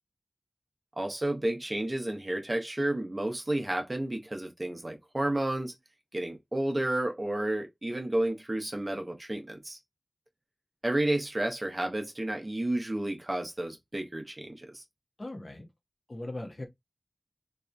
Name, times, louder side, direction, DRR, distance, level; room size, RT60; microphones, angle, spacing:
voice 1, 1.0-5.7 6.1-9.8 10.8-14.8, right 1 dB, 35° right, 0.7 m, -31 dB
voice 2, 15.2-15.7 16.1-16.6, left 1 dB, 55° left, 0.9 m, -39 dB
2.7 x 2.4 x 2.2 m
wide cardioid pair, 65°, 0 cm